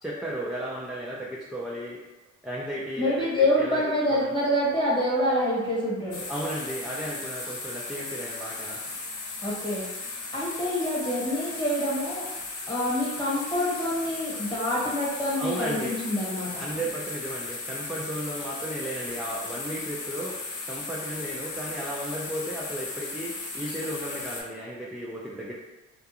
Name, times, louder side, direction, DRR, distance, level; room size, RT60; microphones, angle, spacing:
voice 1, 0.0-2.0 2.4-3.8 4.1-4.3 6.3-8.8 15.4-15.9 16.6-20.4 20.7-25.5, right 1 dB, ahead, -6 dB, 0.3 m, -34 dB
voice 2, 3.0-6.2 9.4-9.8 10.3-12.3 12.7-16.6, left 1 dB, 15° left, -6 dB, 1.1 m, -26 dB
sound 1, 6.1-24.4, left 3 dB, 80° left, 0.7 m, -36 dB
2.4 x 2.2 x 2.8 m, 1.1 s
cardioid pair, 90°, 30 cm